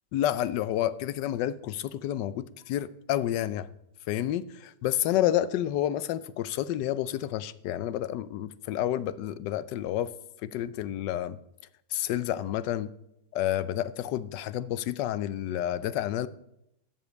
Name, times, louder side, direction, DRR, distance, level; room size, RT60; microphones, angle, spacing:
voice 1, 0.1-3.7 4.1-10.1 10.4-11.4 11.9-12.9 13.3-16.3, left 12 dB, 85° left, 1.2 m, -29 dB
13.0 x 5.1 x 8.4 m
omnidirectional pair, 1.9 m